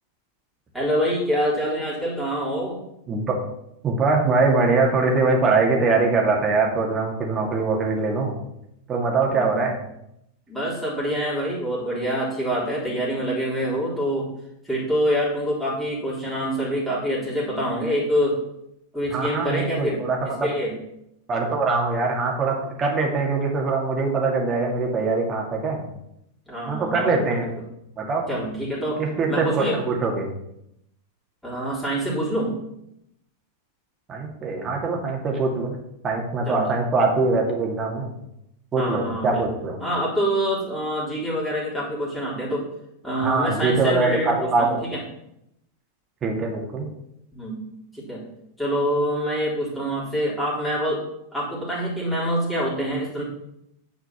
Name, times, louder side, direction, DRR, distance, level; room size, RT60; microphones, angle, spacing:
voice 1, 0.7-2.8 9.3-9.7 10.5-14.3 14.6-18.4 18.9-20.7 26.5-27.5 28.3-29.0 29.3-29.8 31.4-32.6 36.5-36.6 38.8-39.5 39.8-42.6 43.0-45.0 47.3-47.6 47.9-48.2 48.6-51.0 51.3-53.2, equal, ahead, -8 dB, 3.6 m, -26 dB
voice 2, 3.8-8.4 8.9-9.8 19.1-20.5 21.3-25.8 26.7-27.5 28.0-28.2 29.0-30.3 34.1-35.8 36.0-38.1 38.7-39.8 43.2-44.7 46.2-46.9, right 3 dB, 25° right, 0 dB, 2.3 m, -23 dB
9.5 x 5.0 x 5.9 m, 0.79 s
figure-of-eight pair, 90°, 0 cm